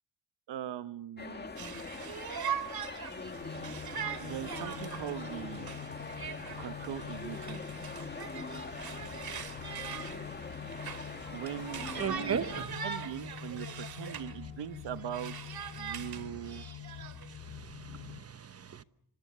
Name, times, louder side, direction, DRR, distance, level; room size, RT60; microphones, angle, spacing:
voice 1, 0.5-1.6 4.2-5.7 6.6-7.6 11.3-16.7, right 11 dB, 80° right, 1.2 m, -41 dB
sound 1, 1.2-12.6, left 3 dB, 25° left, 1.9 m, -43 dB
Conversation, 1.6-14.4 14.7-17.4, right 8 dB, 60° right, 2.5 m, -42 dB
sound 2, 3.3-18.2, left 8 dB, 80° left, 6.0 m, -46 dB
voice 2, 11.8-12.8 13.5-13.6 16.2-16.6 17.4-18.8, right 7 dB, 35° right, 1.1 m, -38 dB
26.5 x 25.0 x 6.8 m
wide cardioid pair, 135°, 42 cm